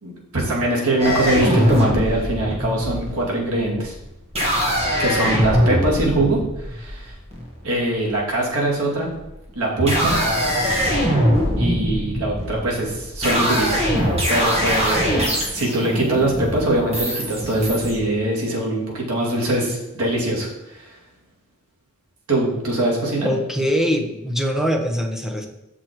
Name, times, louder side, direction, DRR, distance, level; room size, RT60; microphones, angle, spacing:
voice 1, 0.0-3.9 5.0-7.2 7.6-9.1 9.5-10.1 11.6-13.8 14.3-21.0 22.3-23.3, right 1 dB, 80° right, -3 dB, 2.6 m, -22 dB
sound 1, 1.0-7.8 8.8-9.3 9.7-18.0, equal, 30° right, 1.7 m, -22 dB
voice 2, 23.2-25.5, equal, ahead, 3 dB, 0.9 m, -22 dB
6.7 x 6.2 x 4.6 m, 0.93 s
head